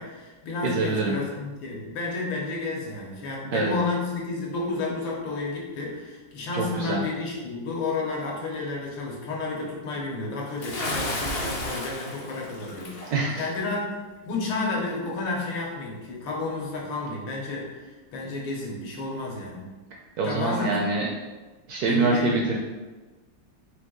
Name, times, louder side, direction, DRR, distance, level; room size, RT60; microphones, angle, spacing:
voice 1, 0.0-13.9 14.3-19.7 20.2-20.8 21.9-22.5, left 3 dB, 85° left, -2 dB, 1.7 m, -31 dB
voice 2, 0.6-1.2 3.5-3.7 6.5-7.0 13.1-13.5 20.2-21.1 21.7-22.6, right 3 dB, 75° right, 0 dB, 0.9 m, -25 dB
Bathtub (filling or washing) / Splash splatter, 10.6-13.1, left 1 dB, 70° left, 0.5 m, -32 dB
4.5 x 2.8 x 3.7 m, 1.2 s
omnidirectional pair, 2.1 m